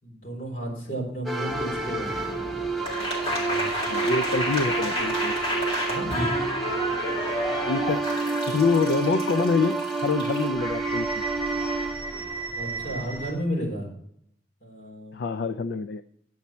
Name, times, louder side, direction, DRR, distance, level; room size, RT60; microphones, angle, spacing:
voice 1, 0.0-2.3 3.1-3.7 5.9-6.1 12.5-13.9 14.6-15.2, right 1 dB, 50° left, -2 dB, 3.9 m, -33 dB
sound 1, 1.3-13.1, right 4 dB, ahead, 1.0 m, -30 dB
sound 2, 1.5-13.3, equal, 30° left, 2.3 m, -31 dB
voice 2, 3.9-5.3 7.7-8.0 8.5-11.2 15.1-16.0, left 4 dB, 70° left, 12 dB, 0.4 m, -26 dB
9.4 x 8.3 x 4.3 m, 0.71 s
head